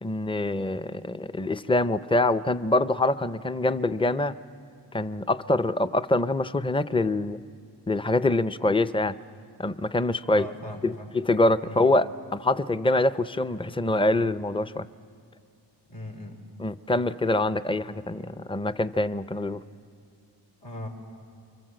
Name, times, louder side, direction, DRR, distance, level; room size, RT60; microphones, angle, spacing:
voice 1, 0.0-4.4 4.9-7.4 7.9-9.2 9.6-10.5 10.8-14.9 16.6-19.6, left 2 dB, 15° left, 13 dB, 0.6 m, -25 dB
voice 2, 10.3-11.1 11.7-11.8 15.9-16.4 20.6-20.9, equal, 75° left, 0 dB, 3.7 m, -38 dB
29.0 x 24.5 x 7.7 m, 2.3 s
wide cardioid pair, 70°, 42 cm